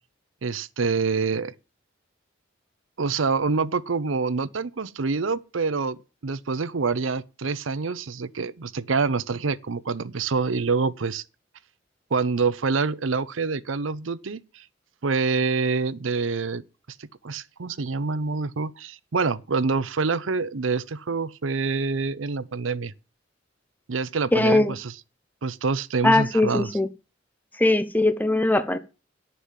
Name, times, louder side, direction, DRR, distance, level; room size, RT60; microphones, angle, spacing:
voice 1, 0.4-1.5 3.0-11.2 12.1-14.6 15.0-16.6 17.0-22.9 23.9-24.9 25.4-26.7, right 4 dB, 85° right, 0.7 m, -26 dB
voice 2, 24.3-24.8 26.0-26.9 27.6-28.8, left 2 dB, 10° left, 0.7 m, -20 dB
11.0 x 6.9 x 7.5 m
head